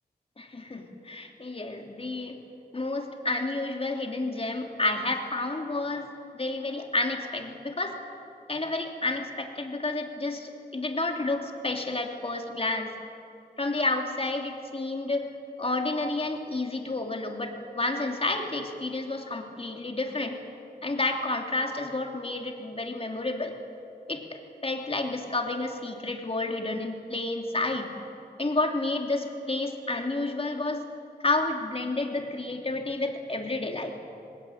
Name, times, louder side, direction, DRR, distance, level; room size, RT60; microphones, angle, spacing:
voice 1, 0.4-2.4 2.7-6.1 6.4-8.0 8.5-12.9 13.6-15.3 15.6-20.4 20.8-23.5 24.1-27.9 28.4-30.8 31.2-33.9, left 2 dB, 35° left, 3 dB, 3.2 m, -30 dB
24.5 x 20.5 x 8.9 m, 2.5 s
wide cardioid pair, 70°, 17 cm